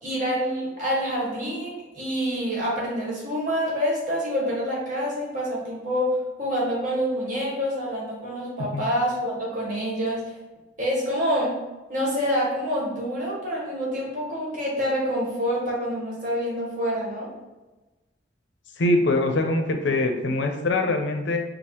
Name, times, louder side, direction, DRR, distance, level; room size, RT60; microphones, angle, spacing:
voice 1, 0.0-10.3 10.8-11.5 11.9-17.3, equal, 45° right, -5 dB, 1.3 m, -27 dB
voice 2, 18.8-21.4, left 2 dB, 70° left, 4 dB, 0.5 m, -23 dB
4.9 x 2.0 x 2.9 m, 1.1 s
head